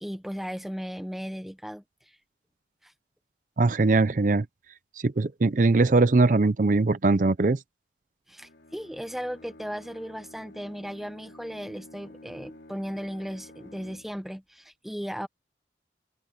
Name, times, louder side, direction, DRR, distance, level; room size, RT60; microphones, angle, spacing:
voice 1, 0.0-2.2 2.8-2.9 8.3-15.3, equal, ahead, 0.7 m, -36 dB
voice 2, 3.6-4.5 5.0-7.6, right 3 dB, 45° right, 0.5 m, -21 dB
Bowed string instrument, 8.4-14.4, left 1 dB, 80° left, 3.7 m, -50 dB
open air
head